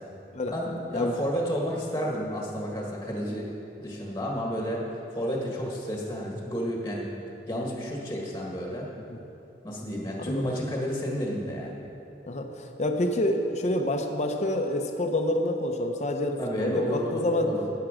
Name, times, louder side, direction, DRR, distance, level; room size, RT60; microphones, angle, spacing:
voice 1, 0.5-3.5 3.8-7.1 7.5-8.9 9.6-11.8 16.4-17.7, equal, 15° left, -2 dB, 1.5 m, -31 dB
voice 2, 12.8-17.5, left 1 dB, 40° left, 3 dB, 0.8 m, -27 dB
13.5 x 9.4 x 5.0 m, 2.9 s
head